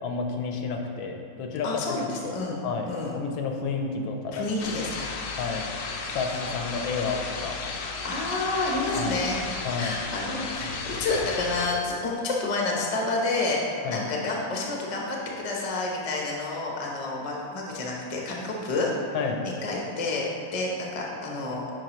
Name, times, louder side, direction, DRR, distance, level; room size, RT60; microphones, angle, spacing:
voice 1, 0.0-2.4 2.6-4.4 5.4-5.7 6.1-7.6 8.9-9.2 9.6-10.0 13.8-14.1 19.1-19.4, left 4 dB, 90° left, 3 dB, 1.5 m, -30 dB
voice 2, 1.6-3.2 4.3-5.2 8.0-18.9 19.4-21.6, left 2 dB, 35° left, -2 dB, 0.6 m, -29 dB
sound 1, 4.6-11.7, left 4 dB, 70° left, 0.8 m, -34 dB
9.1 x 5.3 x 3.0 m, 2.5 s
omnidirectional pair, 2.1 m